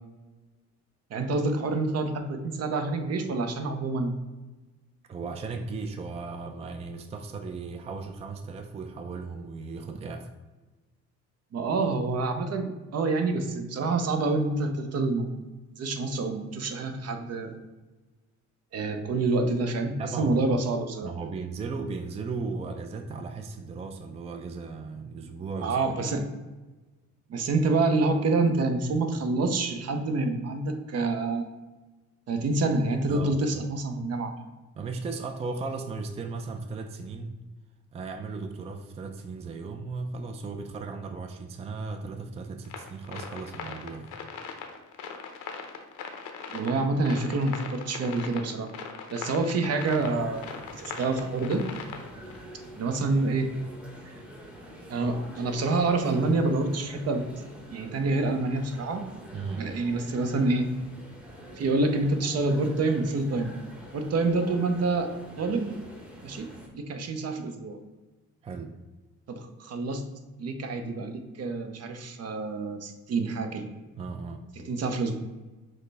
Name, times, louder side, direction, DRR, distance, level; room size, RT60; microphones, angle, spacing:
voice 1, 1.1-4.1 11.5-15.3 15.8-17.6 18.7-21.1 25.6-26.3 27.3-31.5 32.3-34.3 46.5-48.7 49.1-50.4 50.8-51.7 52.7-53.5 54.1-54.2 54.9-57.3 57.7-59.1 59.6-60.7 61.6-63.5 63.9-65.1 65.4-65.7 66.2-66.5 66.7-67.8 69.3-70.0 70.4-73.7 74.6-75.2, right 3 dB, 55° right, 7 dB, 0.6 m, -27 dB
voice 2, 5.1-10.3 19.9-20.4 21.0-25.8 33.1-33.6 34.8-37.3 37.9-44.1 59.3-59.7 68.4-68.8 74.0-74.4, right 4 dB, 20° right, 6 dB, 0.4 m, -36 dB
sound 1, 42.6-52.4, left 6 dB, 90° left, 0.6 m, -40 dB
sound 2, 49.8-66.7, equal, 5° right, 0.9 m, -46 dB
6.3 x 2.1 x 3.3 m, 1.2 s
cardioid pair, 90°, 30 cm